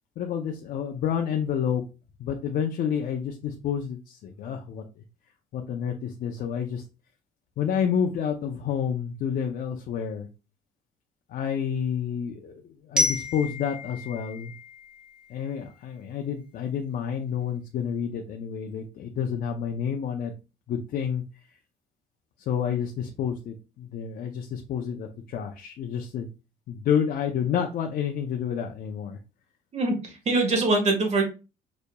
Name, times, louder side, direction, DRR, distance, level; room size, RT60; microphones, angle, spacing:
voice 1, 0.2-1.8 2.2-4.8 5.5-6.8 7.6-10.3 11.3-14.5 15.3-20.3 20.7-21.2 22.5-26.3 26.7-29.2, left 8 dB, 55° left, 3 dB, 0.5 m, -29 dB
Glockenspiel, 13.0-15.8, left 2 dB, 5° right, 1.4 m, -31 dB
voice 2, 29.7-31.2, right 2 dB, 40° right, 4 dB, 1.4 m, -23 dB
5.1 x 2.7 x 2.2 m, 0.30 s
cardioid pair, 110°, 17 cm